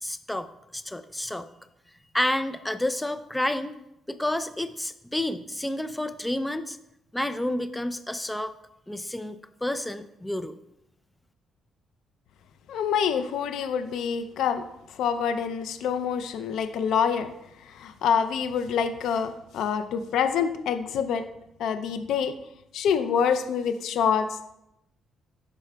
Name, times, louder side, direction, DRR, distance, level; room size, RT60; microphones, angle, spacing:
voice 1, 0.0-1.5 2.1-3.8 4.1-6.8 7.1-8.5 8.9-10.6, left 1 dB, 10° left, 11 dB, 0.4 m, -30 dB
voice 2, 12.7-14.6 14.9-17.3 17.6-21.2 21.6-22.4 22.7-24.6, left 7 dB, 80° left, 10 dB, 0.4 m, -26 dB
11.0 x 4.6 x 2.2 m, 0.85 s
cardioid pair, 90°, 0 cm